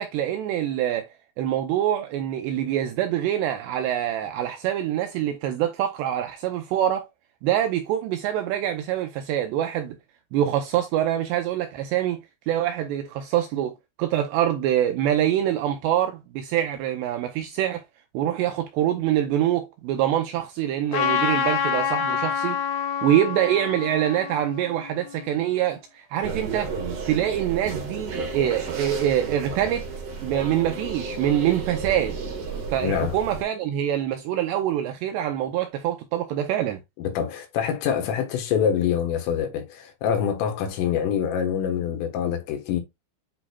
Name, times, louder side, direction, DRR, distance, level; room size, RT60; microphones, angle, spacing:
voice 1, 0.0-7.1 7.4-10.0 10.3-12.2 12.5-13.7 14.0-17.8 18.1-22.6 23.0-26.7 27.1-29.9 30.2-32.2 32.7-36.8, right 11 dB, 85° right, 2.5 m, -25 dB
Trumpet, 20.9-25.6, left 7 dB, 70° left, 1.7 m, -27 dB
sound 1, 26.2-33.4, right 4 dB, 55° right, 1.7 m, -32 dB
voice 2, 32.8-33.2 37.0-42.8, left 8 dB, 85° left, 3.9 m, -25 dB
9.9 x 4.3 x 2.3 m
omnidirectional pair, 5.6 m